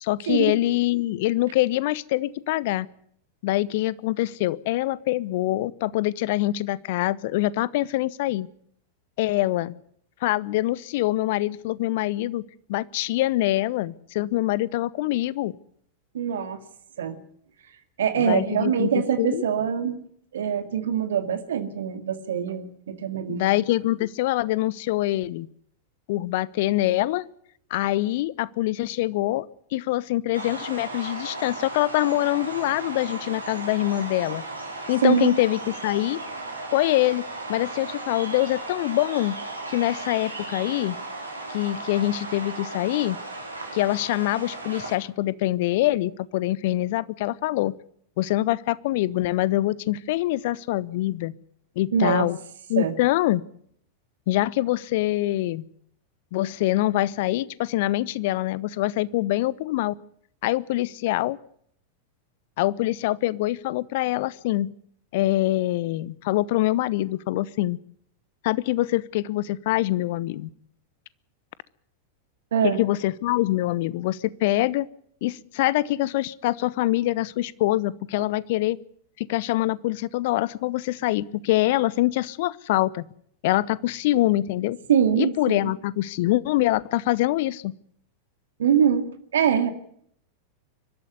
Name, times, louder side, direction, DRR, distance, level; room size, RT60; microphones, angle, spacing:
voice 1, 0.0-2.9 3.4-8.5 9.2-9.7 10.2-12.4 12.7-15.6 18.1-18.9 19.2-19.4 23.3-25.5 26.1-27.3 27.7-34.4 34.9-36.2 36.7-37.2 37.5-39.4 39.7-41.0 41.5-43.2 43.7-47.7 48.2-51.3 51.8-52.4 52.7-53.4 54.3-55.6 56.3-59.9 60.4-61.4 62.6-64.7 65.1-67.8 68.4-70.5 72.6-74.9 75.2-78.8 79.2-83.1 83.4-84.8 85.2-87.7, left 16 dB, 50° left, 21 dB, 0.8 m, -24 dB
voice 2, 16.1-16.6 17.0-17.2 18.0-20.0 20.3-23.5 35.0-35.3 51.9-52.3 52.8-53.0 72.5-72.8 84.9-85.7 88.6-89.1 89.3-89.7, right 8 dB, 65° right, 9 dB, 2.0 m, -23 dB
sound 1, 30.3-45.0, right 2 dB, 80° right, 4.8 m, -36 dB
23.5 x 13.0 x 9.7 m, 0.66 s
figure-of-eight pair, 90°, 0 cm